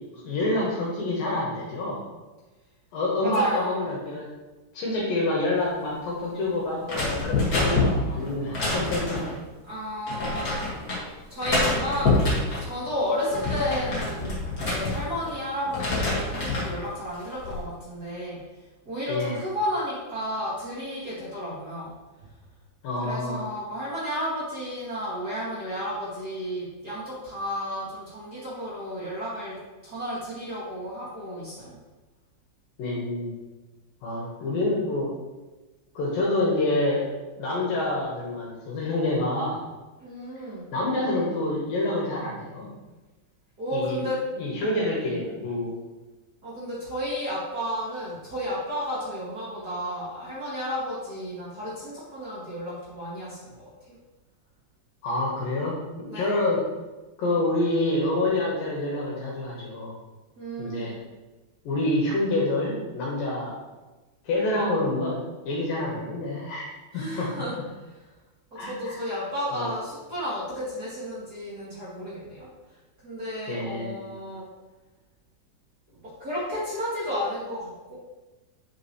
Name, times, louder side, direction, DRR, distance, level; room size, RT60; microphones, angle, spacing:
voice 1, 0.1-2.0 2.9-4.3 4.7-9.2 19.1-19.4 22.8-23.4 32.8-33.3 34.0-35.1 35.9-37.1 37.4-39.6 40.7-42.7 43.7-44.1 44.4-45.8 55.0-56.7 57.2-60.0 60.6-60.9 61.6-63.6 64.2-67.3 68.6-68.9 69.5-69.7 73.5-74.0, left 2 dB, 70° left, -4 dB, 2.7 m, -27 dB
voice 2, 3.2-3.8 9.6-10.6 11.3-12.1 12.5-18.4 18.8-22.3 23.0-29.6 29.8-31.8 40.0-40.7 43.6-44.2 46.4-53.7 56.1-56.4 60.4-61.0 66.9-67.5 67.8-68.0 68.5-72.5 73.0-74.5 76.0-78.0, equal, 35° right, -8 dB, 1.8 m, -32 dB
sound 1, 6.9-9.4 10.1-11.0 11.4-12.7 13.1-15.3 15.7-16.7 17.2-17.6, left 2 dB, 45° left, 1.1 m, -26 dB
9.1 x 5.9 x 3.1 m, 1.2 s
omnidirectional pair, 4.6 m